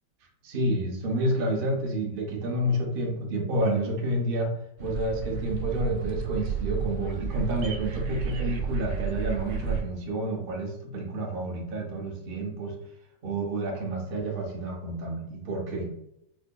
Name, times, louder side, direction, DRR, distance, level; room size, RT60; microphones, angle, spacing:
voice 1, 0.4-4.5 4.8-12.8 13.2-15.9, right 1 dB, 85° right, -1 dB, 0.4 m, -29 dB
sound 1, 4.8-9.8, right 7 dB, 70° right, 0.9 m, -32 dB
4.7 x 2.6 x 2.2 m, 0.79 s
omnidirectional pair, 2.0 m